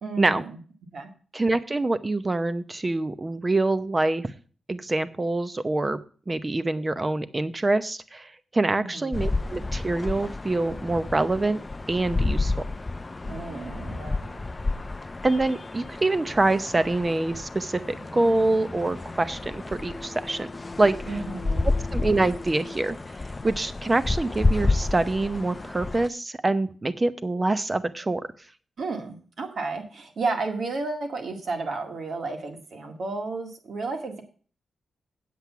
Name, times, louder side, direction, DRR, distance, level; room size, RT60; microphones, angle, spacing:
voice 1, 0.0-0.6 0.9-1.1 8.7-9.2 13.2-14.4 21.1-21.7 28.8-34.2, right 3 dB, 60° right, 3 dB, 2.0 m, -32 dB
voice 2, 1.3-4.3 4.7-6.0 6.3-11.6 11.9-12.5 15.2-20.5 20.8-21.0 21.9-23.0 23.4-28.2, right 2 dB, 20° right, 13 dB, 0.7 m, -25 dB
sound 1, 9.1-26.1, left 3 dB, 25° left, 0.5 m, -30 dB
8.4 x 7.8 x 5.7 m, 0.41 s
wide cardioid pair, 125°, 0 cm